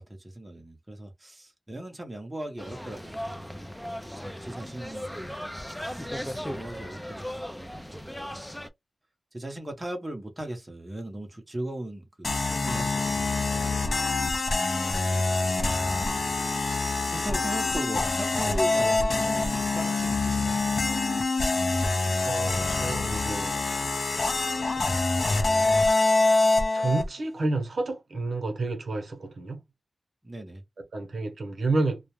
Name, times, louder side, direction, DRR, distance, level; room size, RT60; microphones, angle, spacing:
voice 1, 0.0-3.5 4.0-5.4 5.7-8.4 9.3-13.8 15.8-16.4 16.7-20.6 30.2-30.6, right 1 dB, 15° right, 0.8 m, -39 dB
sound 1, 2.6-8.7, equal, 5° left, 0.4 m, -37 dB
sound 2, 12.2-27.1, left 3 dB, 55° left, 0.5 m, -25 dB
voice 2, 22.2-23.6 24.7-25.0 26.7-29.6 30.9-32.0, right 3 dB, 65° right, 0.7 m, -30 dB
2.3 x 2.1 x 3.0 m
wide cardioid pair, 125°, 0 cm